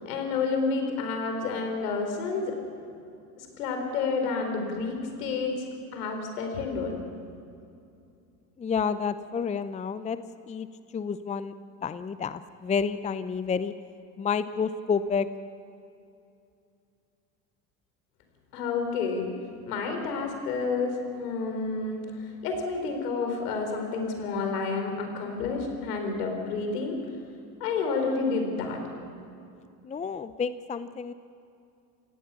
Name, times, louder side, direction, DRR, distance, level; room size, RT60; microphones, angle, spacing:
voice 1, 0.0-2.5 3.4-7.0 18.5-19.3 19.7-27.0 27.6-28.8, left 4 dB, 70° left, 4 dB, 4.6 m, -30 dB
voice 2, 8.6-10.2 10.5-10.7 10.9-11.5 11.8-13.7 14.2-15.3 29.8-31.1, left 6 dB, 15° left, 13 dB, 0.6 m, -29 dB
28.5 x 17.0 x 7.0 m, 2.5 s
hypercardioid pair, 80°, 48 cm